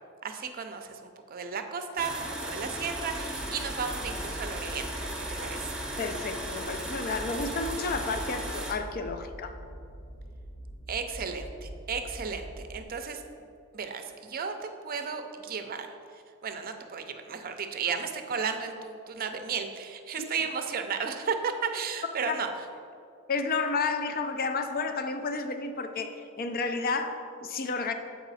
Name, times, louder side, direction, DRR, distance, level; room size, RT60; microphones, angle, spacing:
voice 1, 0.2-4.9 5.4-5.8 10.9-13.2 13.7-22.5, right 6 dB, 45° right, 7 dB, 0.5 m, -34 dB
sound 1, 2.0-8.7, right 1 dB, 5° right, 0.8 m, -36 dB
sound 2, 2.9-12.8, right 1 dB, 60° left, 0.9 m, -43 dB
voice 2, 6.0-9.6 20.2-20.3 22.2-22.4 23.3-27.9, left 4 dB, 45° left, 7 dB, 0.5 m, -31 dB
7.9 x 4.7 x 4.1 m, 2.5 s
head